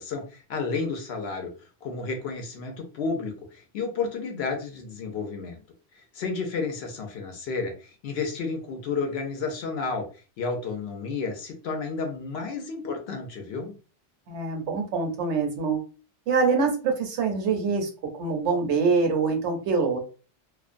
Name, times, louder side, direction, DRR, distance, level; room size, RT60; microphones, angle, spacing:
voice 1, 0.0-1.5 1.8-5.6 5.9-10.0 10.4-13.7, left 4 dB, 65° left, 4 dB, 0.8 m, -31 dB
voice 2, 14.3-15.8 16.3-17.9 18.2-20.0, right 4 dB, 75° right, 4 dB, 0.9 m, -24 dB
2.4 x 2.1 x 2.4 m, 0.36 s
omnidirectional pair, 1.2 m